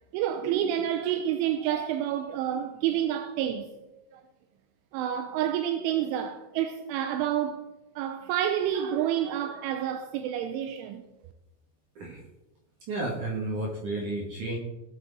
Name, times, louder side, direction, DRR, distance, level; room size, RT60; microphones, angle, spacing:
voice 1, 0.1-3.7 4.1-4.2 4.9-7.6 8.0-11.0, right 10 dB, 85° right, 3.0 m, -29 dB
voice 2, 12.9-14.6, right 2 dB, 60° right, 2.1 m, -32 dB
18.5 x 7.7 x 4.1 m
omnidirectional pair, 5.9 m